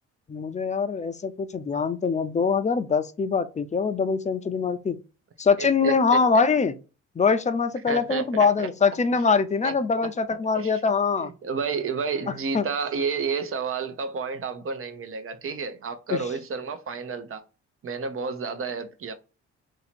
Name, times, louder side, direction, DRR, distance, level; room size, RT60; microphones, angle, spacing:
voice 1, 0.3-5.0 5.4-6.8 7.2-11.3 12.5-12.6 16.1-16.2, left 5 dB, 25° left, 0.5 m, -23 dB
voice 2, 5.6-6.2 7.9-8.7 9.6-9.7 10.5-10.8 11.2-17.4 17.8-19.1, right 5 dB, 45° right, 0.8 m, -31 dB
2.9 x 2.8 x 4.2 m
cardioid pair, 90°, 30 cm